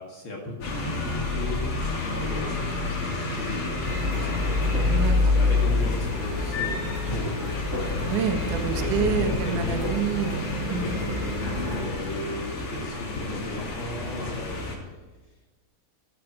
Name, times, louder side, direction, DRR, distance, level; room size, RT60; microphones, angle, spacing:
voice 1, 0.0-1.7 2.1-2.7 3.0-4.6 5.2-7.8 8.7-9.9 10.7-14.6, left 2 dB, 90° left, -1 dB, 1.1 m, -35 dB
sound 1, 0.6-14.8, left 3 dB, 40° left, 4.3 m, -31 dB
sound 2, 3.8-11.9, left 2 dB, 30° right, 1.5 m, -27 dB
voice 2, 4.9-5.4 8.1-10.9, right 7 dB, 70° right, 5 dB, 1.9 m, -28 dB
16.5 x 7.8 x 8.9 m, 1.2 s
omnidirectional pair, 5.9 m